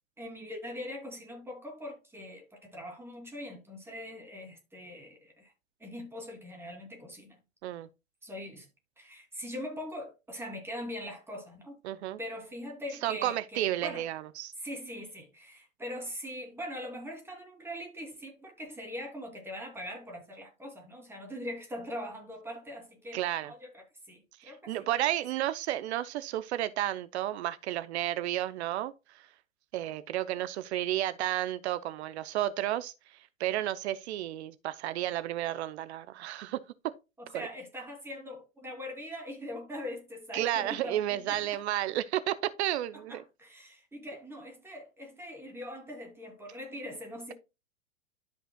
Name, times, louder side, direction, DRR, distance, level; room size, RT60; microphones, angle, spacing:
voice 1, 0.2-5.5 5.8-7.4 8.2-8.7 9.0-11.8 12.2-14.0 14.6-24.7 30.3-30.4 37.2-41.6 42.9-47.3, left 1 dB, 5° right, 2.9 m, -42 dB
voice 2, 11.8-12.2 13.0-14.5 23.1-23.5 24.4-29.3 29.7-32.9 33.4-36.9 37.3-37.5 40.3-43.2, right 13 dB, 55° right, 0.7 m, -32 dB
12.5 x 5.5 x 2.3 m
hypercardioid pair, 115°, 40 cm